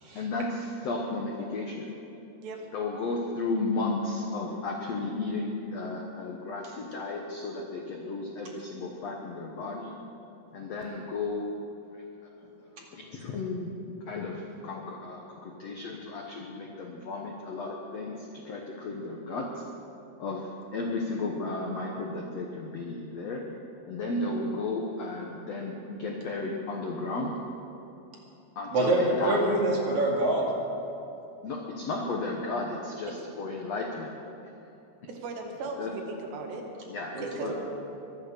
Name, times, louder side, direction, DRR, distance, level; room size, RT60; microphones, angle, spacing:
voice 1, 0.1-1.9 2.7-9.9 10.5-11.5 11.9-12.0 12.9-13.7 14.1-19.6 20.2-23.5 23.9-27.4 28.5-29.4 31.4-34.2 35.8-35.9 36.8-37.5, left 3 dB, 80° left, 0 dB, 1.5 m, -34 dB
voice 2, 28.7-30.4 37.1-37.5, right 1 dB, 50° right, -2 dB, 3.2 m, -25 dB
voice 3, 35.1-36.6 37.2-37.5, right 3 dB, 80° right, 2 dB, 3.9 m, -37 dB
23.0 x 9.4 x 6.7 m, 2.9 s
omnidirectional pair, 4.8 m